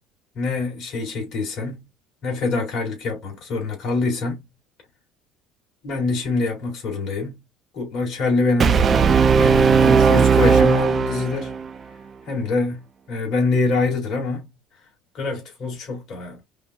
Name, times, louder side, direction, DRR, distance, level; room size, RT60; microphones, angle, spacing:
voice 1, 0.4-1.9 2.2-4.4 5.8-7.4 7.7-8.8 9.4-11.5 12.3-14.5 15.2-16.4, left 3 dB, 50° left, 2.3 m, -25 dB
Brass instrument, 8.6-11.7, right 6 dB, 30° right, 0.4 m, -16 dB
5.3 x 2.2 x 2.3 m
cardioid pair, 135°, 0 cm